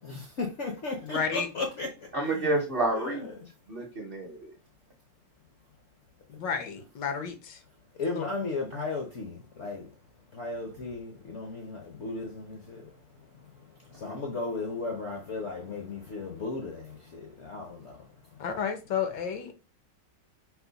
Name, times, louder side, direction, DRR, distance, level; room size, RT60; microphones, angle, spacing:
voice 1, 0.0-1.9 2.3-2.6 2.9-3.3 8.0-9.9 10.3-12.8 14.0-17.9, left 3 dB, 60° left, 0.8 m, -35 dB
voice 2, 1.0-1.5 6.3-7.6 8.1-8.3 18.4-19.5, left 7 dB, 80° left, 1.4 m, -32 dB
voice 3, 2.1-3.3 3.7-4.5 14.0-14.2, right 2 dB, 45° right, 0.7 m, -29 dB
4.7 x 2.0 x 3.9 m
omnidirectional pair, 1.9 m